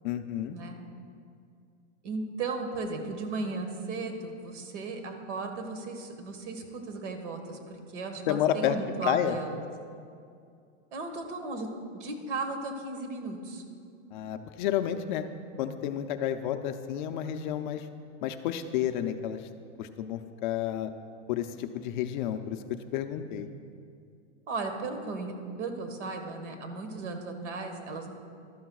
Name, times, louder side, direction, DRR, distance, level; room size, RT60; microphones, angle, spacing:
voice 1, 0.0-0.5 8.3-8.8 9.0-9.4 14.1-15.2 15.6-17.9 18.2-19.4 19.8-20.9 21.3-22.6 22.9-23.5, left 10 dB, 40° left, 8 dB, 0.4 m, -30 dB
voice 2, 2.0-9.6 10.9-11.7 12.0-13.6 14.9-15.1 24.5-28.1, right 3 dB, 70° right, 5 dB, 1.5 m, -36 dB
15.0 x 12.0 x 2.3 m, 2.4 s
supercardioid pair, 150°, 37 cm